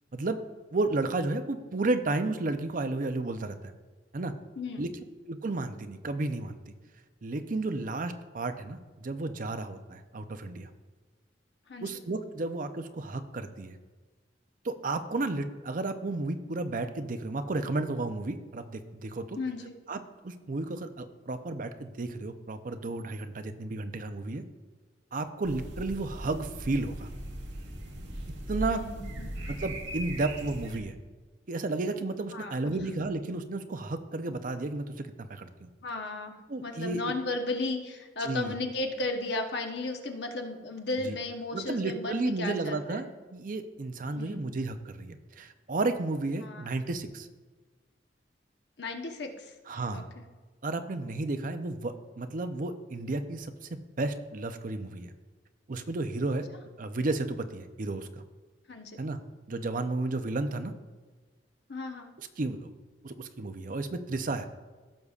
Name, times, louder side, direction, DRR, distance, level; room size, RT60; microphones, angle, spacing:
voice 1, 0.7-3.7 4.1-4.3 4.8-4.9 5.3-6.7 7.2-10.7 11.8-13.8 14.6-19.4 19.9-20.0 20.2-24.4 25.1-27.1 28.5-28.8 29.5-31.0 31.5-35.7 36.5-37.0 38.2-38.5 41.1-41.2 41.5-47.3 49.7-50.0 50.6-55.1 55.7-56.5 56.8-58.1 59.0-59.2 59.5-60.7 62.4-62.7 63.0-64.5, right 2 dB, 50° right, 9 dB, 0.6 m, -32 dB
voice 2, 19.4-19.7 28.6-29.3 32.3-32.7 35.8-43.0 44.1-44.4 46.4-46.7 48.8-49.5 49.9-50.2 58.7-59.0 61.7-62.1, left 2 dB, 70° left, 4 dB, 1.0 m, -35 dB
sound 1, 25.4-30.8, right 1 dB, 85° right, 1.2 m, -39 dB
16.0 x 6.7 x 2.4 m, 1.3 s
head